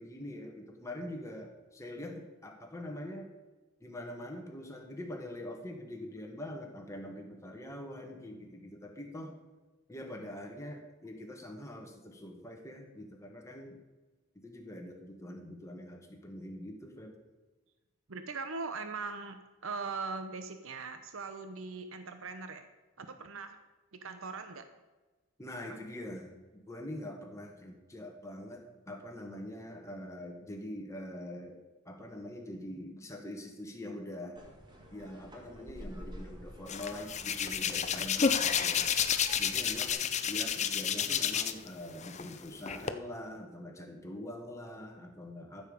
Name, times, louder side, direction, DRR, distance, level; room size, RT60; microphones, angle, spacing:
voice 1, 0.0-3.3 3.8-9.3 9.9-13.8 14.4-17.1 25.4-31.6 31.9-34.4 34.9-38.9 39.4-45.6, left 1 dB, 15° left, 1 dB, 1.7 m, -44 dB
voice 2, 18.1-22.6 23.0-23.6 23.9-24.6 25.6-25.8, right 4 dB, 70° right, 8 dB, 0.9 m, -40 dB
sound 1, 34.3-39.9, equal, 20° right, 1.9 m, -50 dB
Hands, 36.7-41.7 42.0-42.9, left 7 dB, 30° left, 0.6 m, -30 dB
14.5 x 7.3 x 5.2 m, 1.2 s
head